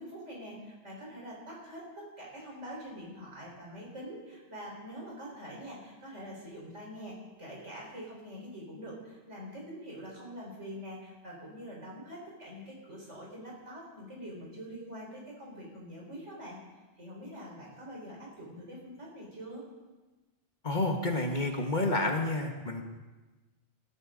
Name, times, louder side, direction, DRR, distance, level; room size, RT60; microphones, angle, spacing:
voice 1, 0.0-16.6 17.0-19.6, equal, 90° right, -3 dB, 4.9 m, -45 dB
voice 2, 20.6-22.8, left 2 dB, 40° left, 3 dB, 1.6 m, -29 dB
19.5 x 12.5 x 3.9 m, 1.2 s
omnidirectional pair, 1.2 m